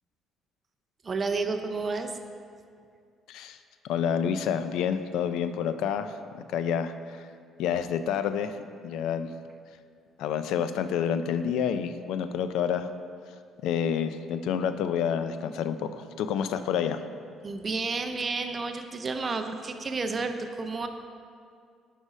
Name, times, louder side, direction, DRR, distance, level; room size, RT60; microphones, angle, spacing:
voice 1, 1.0-2.1 17.4-20.9, right 3 dB, 30° right, 6 dB, 0.5 m, -31 dB
voice 2, 3.9-6.2 6.5-7.2 7.6-8.6 8.8-9.3 10.2-12.9 13.6-17.0, left 8 dB, 80° left, 10 dB, 0.3 m, -28 dB
6.4 x 5.0 x 5.0 m, 2.2 s
cardioid pair, 125°, 0 cm